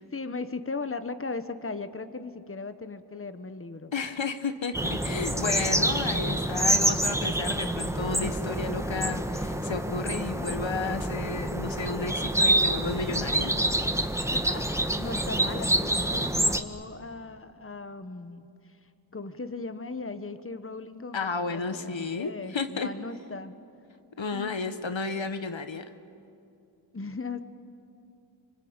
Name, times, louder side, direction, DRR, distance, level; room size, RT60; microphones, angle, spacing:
voice 1, 0.0-3.9 14.3-23.5 24.3-24.6 26.9-27.4, left 3 dB, 25° left, 10 dB, 1.3 m, -38 dB
voice 2, 3.9-13.5 21.1-22.9 24.2-25.8, left 4 dB, 65° left, 9 dB, 1.3 m, -32 dB
sound 1, 4.7-16.6, right 1 dB, 5° right, 1.4 m, -27 dB
26.0 x 25.0 x 8.9 m, 2.6 s
cardioid pair, 40°, 48 cm